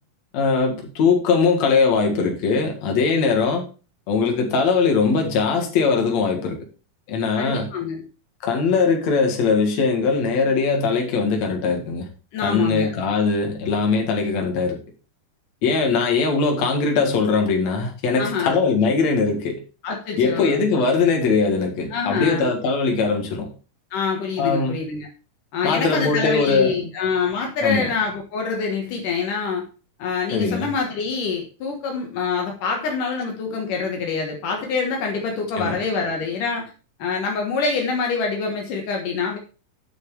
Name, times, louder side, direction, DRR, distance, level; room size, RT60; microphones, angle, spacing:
voice 1, 0.3-3.6 4.1-6.6 7.1-7.7 8.4-12.1 12.4-14.8 15.6-19.6 20.2-23.5 24.4-24.8 25.6-26.9 27.6-27.9 30.3-30.7 35.6-35.7, left 4 dB, 55° left, 3.0 m, -21 dB
voice 2, 7.4-8.0 12.3-12.9 18.2-18.6 19.8-20.6 21.9-22.5 23.9-25.1 25.5-29.6 30.0-36.7 37.0-39.4, left 5 dB, 75° left, 3.0 m, -25 dB
9.7 x 6.2 x 4.9 m
omnidirectional pair, 3.9 m